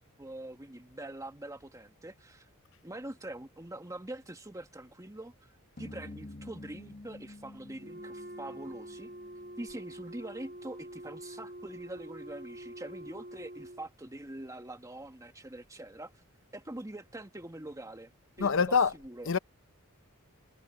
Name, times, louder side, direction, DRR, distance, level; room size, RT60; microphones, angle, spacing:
voice 1, 0.0-2.5 2.8-5.5 5.8-9.1 9.6-16.2 16.5-18.1 18.4-19.3, right 1 dB, 15° right, 1.5 m, -44 dB
sound 1, 5.8-10.1, left 2 dB, 40° left, 1.6 m, -49 dB
Wind instrument woodwind instrument, 7.8-13.9, right 1 dB, 45° right, 1.7 m, -46 dB
voice 2, 18.4-19.0 19.2-19.4, left 5 dB, 65° left, 0.7 m, -25 dB
head